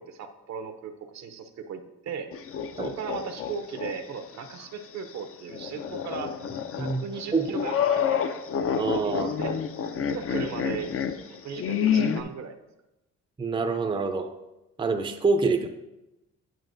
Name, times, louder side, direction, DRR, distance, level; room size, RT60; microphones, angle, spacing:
voice 1, 0.0-2.3 2.8-6.4 6.8-8.3 8.8-9.6 10.1-10.9 11.3-12.6, right 6 dB, 65° right, 8 dB, 0.7 m, -37 dB
sound 1, 2.3-3.9 4.3-4.4 5.5-12.2, left 8 dB, 45° left, 0.5 m, -28 dB
voice 2, 8.8-9.3 13.4-14.3 14.8-15.7, right 4 dB, 15° right, 6 dB, 0.5 m, -26 dB
9.2 x 5.8 x 2.6 m, 0.94 s
cardioid pair, 90°, 30 cm